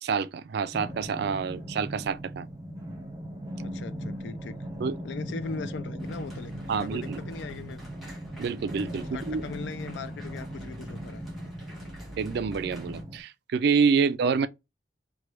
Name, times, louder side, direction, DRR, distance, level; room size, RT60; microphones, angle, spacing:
voice 1, 0.0-2.5 4.8-4.9 6.7-7.2 8.4-9.4 12.2-14.5, right 5 dB, 60° right, 0.3 m, -27 dB
sound 1, 0.7-13.2, equal, 20° right, 0.7 m, -39 dB
voice 2, 3.6-4.6 5.0-7.8 9.1-11.3 14.0-14.2, left 4 dB, 65° left, 0.4 m, -40 dB
sound 2, 6.0-13.0, right 1 dB, ahead, 1.2 m, -48 dB
3.2 x 2.2 x 3.0 m
head